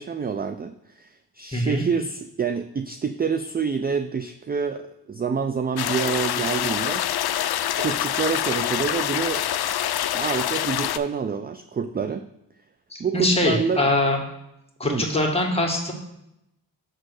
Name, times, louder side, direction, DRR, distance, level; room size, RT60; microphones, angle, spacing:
voice 1, 0.0-7.1 7.8-9.5 10.1-12.3 13.0-13.9 14.8-15.1, right 6 dB, 25° right, 9 dB, 0.4 m, -27 dB
voice 2, 1.5-1.9 12.9-14.2 14.8-15.9, left 1 dB, 15° left, -1 dB, 1.9 m, -23 dB
sound 1, 5.8-11.0, left 11 dB, 60° left, 0.5 m, -25 dB
6.3 x 4.2 x 6.4 m, 0.84 s
cardioid pair, 55°, 43 cm